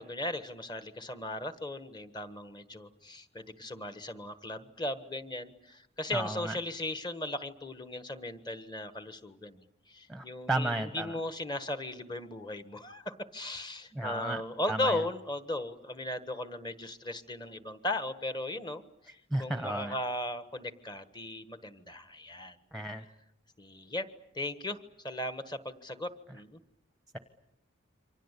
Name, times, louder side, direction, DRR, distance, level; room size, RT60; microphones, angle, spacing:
voice 1, 0.0-19.1 19.4-22.6 23.6-24.1 24.3-26.6, left 1 dB, 20° left, 11 dB, 1.5 m, -37 dB
voice 2, 6.1-6.6 10.1-11.1 13.9-14.4 14.7-15.0 19.3-19.9 22.7-23.0, right 2 dB, ahead, 9 dB, 1.1 m, -33 dB
28.0 x 25.0 x 8.4 m, 0.80 s
head